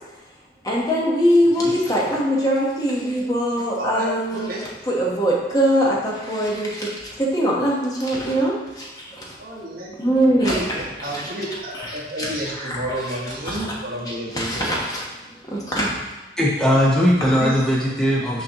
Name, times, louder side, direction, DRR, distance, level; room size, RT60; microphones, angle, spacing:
voice 1, 0.6-4.5 4.9-9.4 10.0-11.3 11.7-13.1 13.4-13.8 14.3-15.1 15.5-16.0, equal, 20° left, -4 dB, 1.1 m, -22 dB
voice 2, 3.8-4.6 9.4-9.9 10.4-14.8 17.4-17.5, equal, 50° right, -4 dB, 1.3 m, -30 dB
voice 3, 16.4-18.4, equal, 5° left, -4 dB, 0.7 m, -19 dB
6.2 x 5.3 x 3.0 m, 1.1 s
head